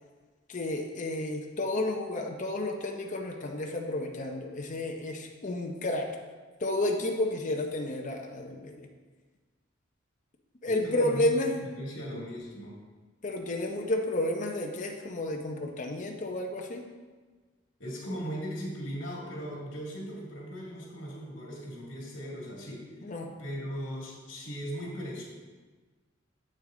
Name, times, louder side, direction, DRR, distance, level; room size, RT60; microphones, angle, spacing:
voice 1, 0.5-6.1 6.6-8.9 10.6-11.6 13.2-16.8 23.0-23.3, left 1 dB, 40° left, 2 dB, 0.7 m, -31 dB
voice 2, 10.7-12.8 17.8-22.9 23.4-25.2, equal, 70° left, -3 dB, 2.3 m, -38 dB
8.0 x 6.5 x 3.8 m, 1.4 s
head